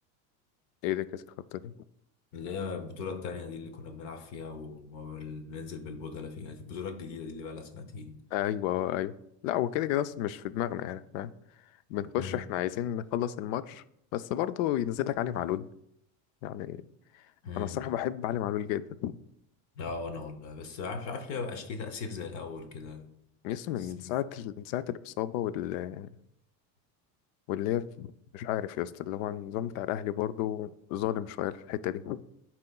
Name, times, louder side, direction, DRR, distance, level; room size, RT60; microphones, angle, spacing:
voice 1, 0.8-1.2 1.5-1.7 8.3-9.1 9.4-11.3 11.9-13.8 14.1-15.7 16.4-16.8 17.6-19.2 23.4-26.1 27.5-32.2, left 12 dB, 75° left, 15 dB, 0.5 m, -32 dB
voice 2, 2.3-8.2 12.2-12.4 17.4-17.9 19.8-23.1 23.8-24.2, left 5 dB, 45° left, 7 dB, 0.8 m, -39 dB
11.5 x 4.3 x 2.3 m, 0.76 s
cardioid pair, 165°, 41 cm